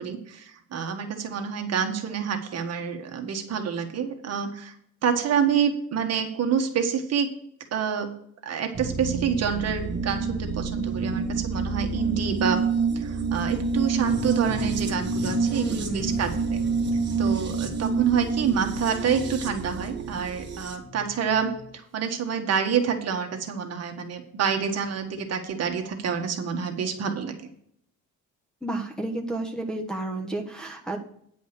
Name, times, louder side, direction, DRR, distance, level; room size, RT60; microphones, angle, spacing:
voice 1, 0.0-4.7 5.0-7.3 7.7-8.1 8.4-12.6 12.9-16.6 17.2-27.3, right 7 dB, 50° right, 5 dB, 1.5 m, -27 dB
sound 1, 8.7-20.8, right 4 dB, 35° right, 1.5 m, -28 dB
sound 2, 14.0-21.7, left 3 dB, 70° left, 3.1 m, -41 dB
voice 2, 15.5-16.2 28.6-31.0, right 2 dB, ahead, -2 dB, 1.2 m, -31 dB
9.7 x 5.3 x 6.6 m, 0.67 s
cardioid pair, 160°, 32 cm